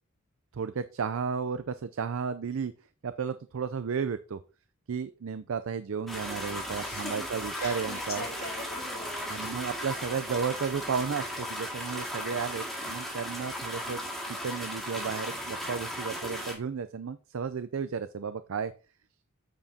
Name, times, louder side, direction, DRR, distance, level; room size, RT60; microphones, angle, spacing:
voice 1, 0.5-2.7 3.0-4.4 4.9-8.2 9.3-14.0 14.3-18.7, right 6 dB, 80° right, 12 dB, 0.5 m, -33 dB
sound 1, 6.1-16.5, equal, ahead, 2.0 m, -36 dB
voice 2, 6.8-7.3 7.5-9.5, left 2 dB, 45° left, -2 dB, 3.0 m, -42 dB
9.0 x 7.1 x 2.8 m, 0.34 s
head